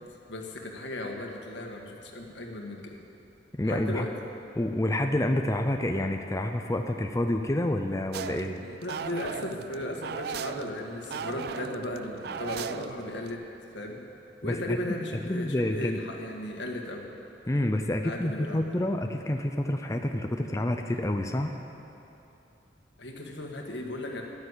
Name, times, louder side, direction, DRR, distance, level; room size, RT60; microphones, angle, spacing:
voice 1, 0.3-3.0 3.6-4.1 8.8-13.4 13.7-14.0 14.4-17.1 18.0-18.8 23.0-24.2, left 1 dB, 85° left, 1 dB, 1.8 m, -36 dB
voice 2, 3.6-4.1 4.5-8.6 14.4-14.8 15.2-16.0 17.5-21.5, left 1 dB, 15° left, 4 dB, 0.5 m, -28 dB
sound 1, 8.1-13.3, right 6 dB, 60° right, 0.4 m, -38 dB
12.0 x 10.5 x 8.1 m, 2.8 s
head